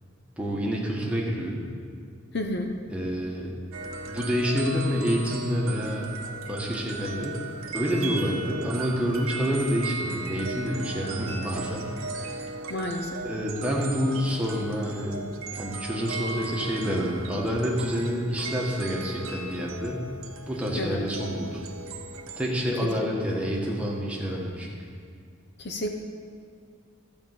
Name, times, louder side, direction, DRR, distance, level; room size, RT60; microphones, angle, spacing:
voice 1, 0.4-1.7 2.9-3.5 4.1-6.2 6.4-7.4 7.7-11.9 12.2-12.4 13.2-15.2 15.5-20.1 20.5-21.6 22.4-24.7, equal, 5° right, -3 dB, 1.4 m, -28 dB
voice 2, 2.3-2.7 12.7-13.2 20.7-21.1 22.8-23.1 25.6-25.9, left 1 dB, 50° left, 4 dB, 0.8 m, -31 dB
sound 1, 3.7-22.5, right 3 dB, 85° right, 1.0 m, -37 dB
12.5 x 5.3 x 7.7 m, 2.2 s
head